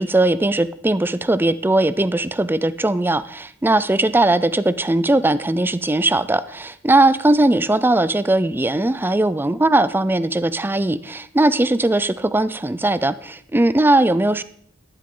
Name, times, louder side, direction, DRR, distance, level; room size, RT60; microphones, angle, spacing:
voice 1, 0.0-14.4, right 2 dB, 10° right, 15 dB, 0.4 m, -19 dB
13.5 x 11.0 x 3.8 m, 0.62 s
head